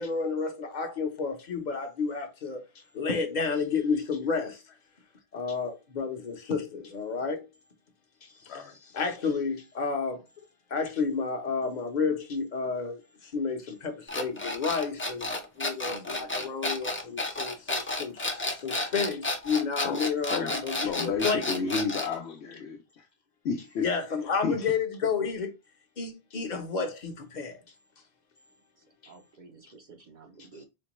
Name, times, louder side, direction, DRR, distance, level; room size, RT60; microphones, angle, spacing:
voice 1, 0.0-2.6 2.9-4.6 5.3-7.5 8.9-10.2 10.7-13.0 13.3-15.3 15.6-18.3 18.6-21.5 23.8-25.5 26.0-27.5, left 5 dB, 50° left, 0.8 m, -30 dB
sound 1, 14.1-22.2, left 2 dB, 20° left, 0.3 m, -32 dB
voice 2, 15.8-16.2 28.8-30.7, right 4 dB, 55° right, 0.7 m, -51 dB
voice 3, 19.8-23.1 23.4-23.9 24.4-24.7, left 5 dB, 85° left, 0.8 m, -32 dB
4.3 x 2.1 x 3.0 m
omnidirectional pair, 1.1 m